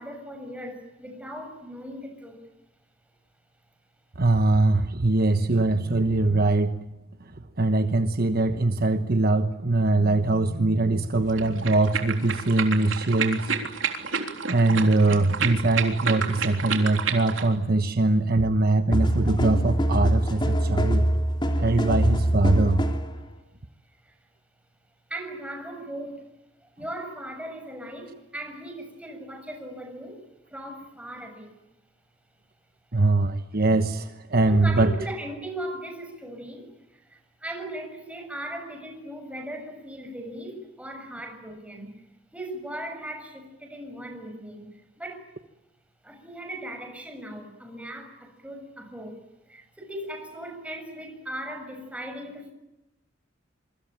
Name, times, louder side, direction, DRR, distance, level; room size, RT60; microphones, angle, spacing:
voice 1, 0.0-2.4 24.0-24.1 25.1-26.2 26.6-30.2 30.5-31.5 34.5-41.9 42.3-45.3 46.0-52.5, right 1 dB, 5° right, 5 dB, 6.8 m, -38 dB
voice 2, 4.2-6.8 7.6-13.5 14.5-21.1 21.6-22.8 32.9-34.9, right 2 dB, 50° right, 9 dB, 1.2 m, -22 dB
sound 1, 11.3-17.5, right 6 dB, 85° right, 3.6 m, -30 dB
sound 2, 18.9-23.1, equal, 25° left, 3.1 m, -23 dB
26.5 x 24.5 x 8.9 m, 0.96 s
head